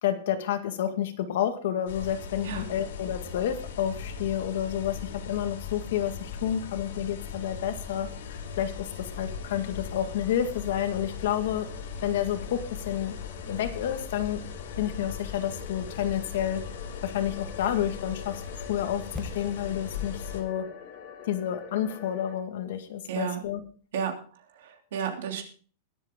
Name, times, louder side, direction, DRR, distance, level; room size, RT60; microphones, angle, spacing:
voice 1, 0.0-11.7 12.0-13.2 13.5-14.4 14.8-16.6 17.0-20.7 21.2-23.6, left 10 dB, 60° left, 8 dB, 1.8 m, -30 dB
sound 1, 1.9-20.4, left 6 dB, 85° left, 3.8 m, -39 dB
sound 2, 5.1-22.4, left 8 dB, 40° left, 2.0 m, -48 dB
sound 3, 19.1-23.1 23.3-23.5, left 2 dB, 5° left, 1.2 m, -45 dB
voice 2, 23.1-23.4 23.9-25.4, right 8 dB, 65° right, 4 dB, 3.1 m, -33 dB
21.5 x 8.1 x 3.7 m, 0.41 s
supercardioid pair, 180°, 0 cm